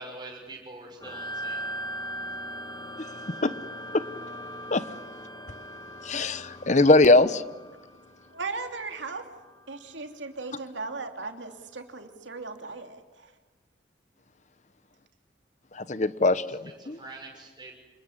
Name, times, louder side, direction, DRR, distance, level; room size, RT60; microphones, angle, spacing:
voice 1, 0.0-1.6 16.5-17.7, right 2 dB, 25° right, 1 dB, 6.4 m, -44 dB
sound 1, 1.0-9.8, equal, 20° left, 1.7 m, -40 dB
voice 2, 6.0-7.4 15.7-17.0, left 2 dB, 40° left, 15 dB, 1.0 m, -21 dB
voice 3, 8.3-9.2 9.7-13.3, right 3 dB, 90° right, 6 dB, 2.8 m, -37 dB
27.5 x 21.5 x 9.9 m, 1.2 s
head